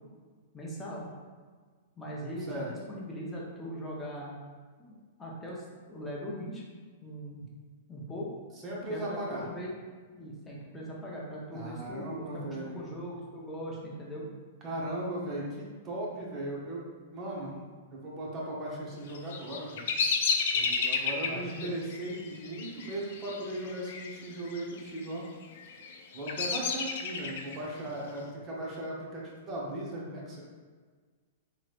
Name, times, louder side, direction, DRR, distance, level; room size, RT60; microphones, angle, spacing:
voice 1, 0.5-1.1 2.0-4.3 4.8-4.9 5.2-6.6 7.0-7.5 7.9-8.3 8.9-9.7 10.1-14.3 21.2-21.7, equal, 10° left, -5 dB, 0.8 m, -40 dB
voice 2, 8.6-9.5 11.5-12.8 14.6-17.6 17.9-19.8 20.5-25.3 26.1-30.4, right 1 dB, 30° right, -4 dB, 0.8 m, -37 dB
Bird vocalization bird call bird song, 19.1-24.1 24.4-25.0 25.6-27.6, left 5 dB, 65° left, 0.4 m, -31 dB
3.0 x 3.0 x 2.5 m, 1.5 s
hypercardioid pair, 130°, 0 cm